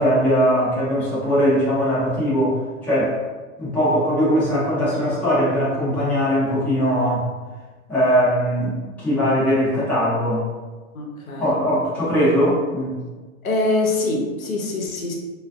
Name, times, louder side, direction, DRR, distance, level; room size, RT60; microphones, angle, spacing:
voice 1, 0.0-3.2 3.6-7.3 7.9-10.5 11.4-13.0, equal, 5° left, -11 dB, 0.5 m, -20 dB
voice 2, 10.9-11.5 13.4-15.1, left 2 dB, 80° left, -1 dB, 0.7 m, -24 dB
2.4 x 2.3 x 2.3 m, 1.3 s
figure-of-eight pair, 120°, 41 cm